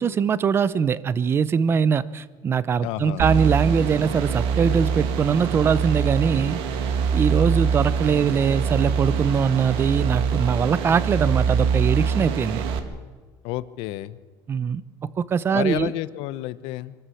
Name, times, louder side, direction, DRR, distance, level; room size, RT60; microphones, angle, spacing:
voice 1, 0.0-6.6 7.1-12.6 14.5-15.9, right 6 dB, 25° right, 18 dB, 0.7 m, -22 dB
voice 2, 2.8-3.2 13.4-14.2 15.5-16.9, left 16 dB, 75° left, 16 dB, 0.8 m, -30 dB
sound 1, 3.2-12.8, right 6 dB, 70° right, 2.0 m, -24 dB
24.5 x 13.0 x 8.4 m, 1.4 s
cardioid pair, 155°, 9 cm